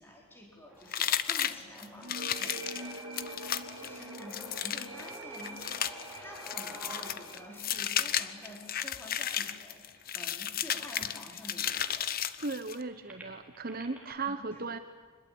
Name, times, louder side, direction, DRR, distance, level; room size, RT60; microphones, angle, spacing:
voice 1, 0.0-12.1 14.2-14.7, equal, 10° left, 0 dB, 4.4 m, -50 dB
sound 1, 0.7-10.6 11.3-11.4 11.7-14.1, right 1 dB, 10° right, 4.1 m, -51 dB
sound 2, 0.9-12.8, left 10 dB, 45° left, 0.9 m, -34 dB
sound 3, 2.0-9.4, right 2 dB, 85° right, 2.6 m, -46 dB
voice 2, 12.4-14.8, right 3 dB, 45° right, 9 dB, 1.2 m, -36 dB
26.0 x 21.0 x 8.8 m, 1.4 s
head